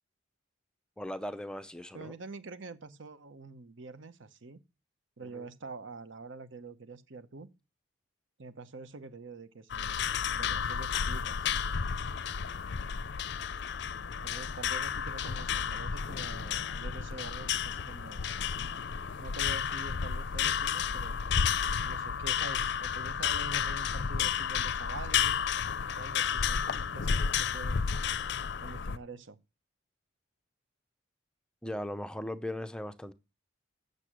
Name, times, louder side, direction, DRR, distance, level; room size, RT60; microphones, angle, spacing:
voice 1, 1.0-2.2 5.2-5.5 31.6-33.1, left 1 dB, 5° left, 0.5 m, -38 dB
voice 2, 1.9-4.6 5.2-7.5 8.4-11.5 14.2-18.3 19.2-21.5 21.8-25.4 25.9-28.1 28.6-29.4, right 3 dB, 65° right, 0.8 m, -46 dB
sound 1, 9.7-29.0, left 7 dB, 55° left, 0.5 m, -32 dB
8.4 x 6.7 x 6.1 m
head